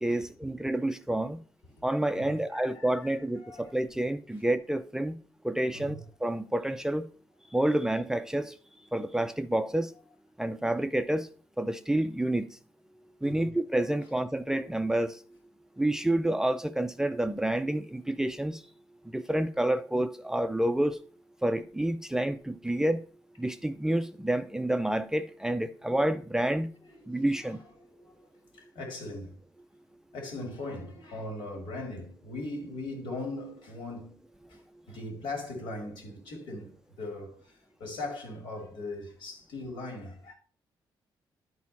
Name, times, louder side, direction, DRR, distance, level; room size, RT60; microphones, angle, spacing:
voice 1, 0.0-1.4 1.8-5.2 5.4-6.0 6.2-7.1 7.5-8.5 8.9-9.9 10.4-11.3 11.6-12.6 13.2-15.2 15.8-18.6 19.0-21.0 21.4-23.0 23.4-26.7 27.1-27.6, right 1 dB, 5° right, 0.4 m, -29 dB
voice 2, 2.1-3.7 5.7-6.0 13.2-13.5 26.9-28.2 28.5-29.4 30.1-34.2 34.5-34.6 34.9-40.3, left 2 dB, 80° left, 2.5 m, -40 dB
11.0 x 4.2 x 4.1 m
cardioid pair, 105°, 8 cm